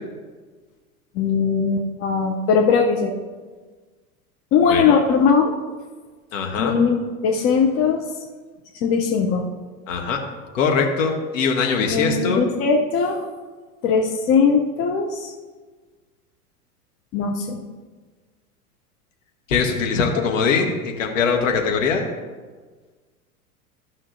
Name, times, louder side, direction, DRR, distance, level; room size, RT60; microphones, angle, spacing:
voice 1, 1.1-3.1 4.5-5.5 6.6-8.0 8.8-9.4 11.9-13.2 13.8-15.3 17.1-17.6 20.2-20.3, left 5 dB, 30° left, 2 dB, 0.7 m, -19 dB
voice 2, 6.3-6.8 9.9-10.2 10.5-12.4 19.5-22.1, left 5 dB, 55° left, 3 dB, 1.5 m, -22 dB
14.0 x 5.8 x 2.7 m, 1.4 s
figure-of-eight pair, 90°, 45 cm